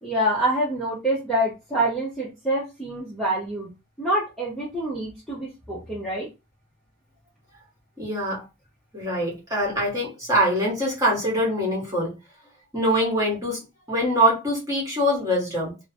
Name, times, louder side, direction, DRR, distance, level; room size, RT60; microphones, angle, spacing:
voice 1, 0.0-3.7 4.0-6.3, right 1 dB, ahead, 0.7 m, -26 dB
voice 2, 8.0-8.4 8.9-12.1 12.7-13.6 13.9-15.7, equal, 15° right, 1.2 m, -23 dB
3.0 x 2.0 x 2.6 m
head